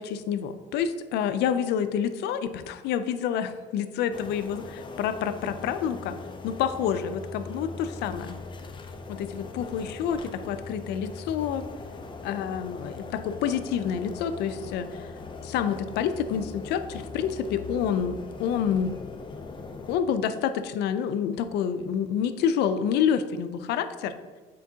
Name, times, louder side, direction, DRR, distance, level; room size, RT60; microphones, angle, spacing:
voice 1, 0.0-6.1 6.4-8.4 9.1-11.7 12.2-15.1 15.4-18.9 19.9-24.1, left 8 dB, 80° left, 11 dB, 0.5 m, -28 dB
sound 1, 4.1-20.0, left 4 dB, 30° left, 0.5 m, -40 dB
8.3 x 4.5 x 2.8 m, 1.4 s
cardioid pair, 110°, 17 cm